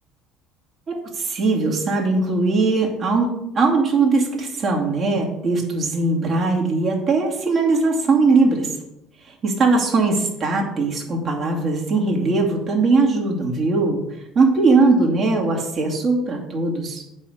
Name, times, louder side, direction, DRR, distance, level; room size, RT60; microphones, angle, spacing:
voice 1, 0.9-3.3 3.5-8.7 9.3-14.0 14.3-17.0, right 3 dB, 40° right, 0 dB, 2.5 m, -20 dB
8.9 x 5.4 x 6.7 m, 0.85 s
figure-of-eight pair, 60°, 0 cm